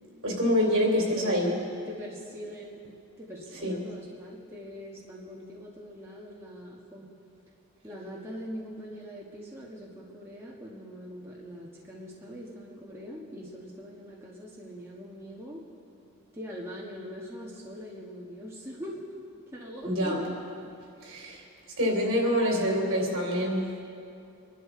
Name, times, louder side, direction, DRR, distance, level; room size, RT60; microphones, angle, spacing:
voice 1, 0.2-1.5 3.6-3.8 19.8-20.2 21.0-21.4 21.8-23.8, equal, 65° right, 0 dB, 3.2 m, -26 dB
voice 2, 1.0-1.6 1.8-2.8 3.2-7.1 7.8-15.6 16.3-19.0 19.5-20.4 21.9-23.1, equal, 10° right, -5 dB, 1.5 m, -42 dB
24.0 x 12.0 x 3.8 m, 2.6 s
head